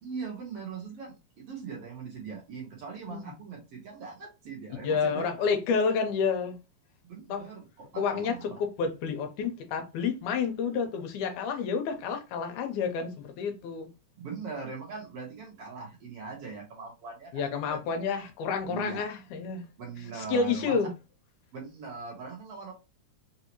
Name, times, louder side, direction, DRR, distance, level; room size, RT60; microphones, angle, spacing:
voice 1, 0.0-5.5 7.0-8.5 14.2-17.8 18.7-19.0 19.8-20.8 21.5-22.7, right 5 dB, 60° right, 1.8 m, -40 dB
voice 2, 4.8-6.6 7.3-7.5 8.0-13.9 17.3-19.7 20.1-20.9, left 5 dB, 80° left, 2.2 m, -29 dB
5.1 x 2.7 x 2.9 m
omnidirectional pair, 3.6 m